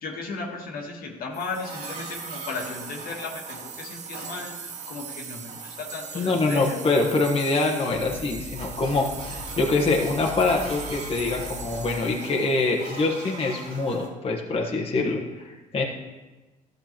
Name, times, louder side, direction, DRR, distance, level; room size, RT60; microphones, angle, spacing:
voice 1, 0.0-6.8, left 3 dB, 65° left, 1 dB, 1.5 m, -35 dB
sound 1, 1.3-13.4, right 7 dB, 50° right, 0.7 m, -40 dB
sound 2, 1.3-14.1, right 2 dB, 65° right, 2.6 m, -43 dB
sound 3, 6.1-6.8 7.5-7.6 7.9-12.1, left 3 dB, 85° left, 1.0 m, -41 dB
voice 2, 6.1-9.0 9.6-15.2 15.7-15.8, left 3 dB, 35° left, -1 dB, 1.2 m, -24 dB
13.0 x 6.6 x 3.0 m, 1.2 s
supercardioid pair, 65°, 16 cm